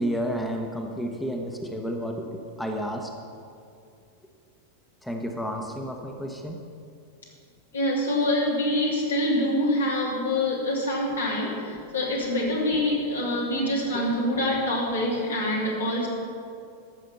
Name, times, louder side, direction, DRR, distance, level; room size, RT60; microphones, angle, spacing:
voice 1, 0.0-3.1 5.0-6.6 11.7-11.9 13.9-14.0, equal, 5° left, 2 dB, 1.0 m, -31 dB
voice 2, 7.7-16.1, left 1 dB, 70° left, -3 dB, 2.9 m, -25 dB
13.5 x 6.5 x 7.1 m, 2.4 s
figure-of-eight pair, 90°, 0 cm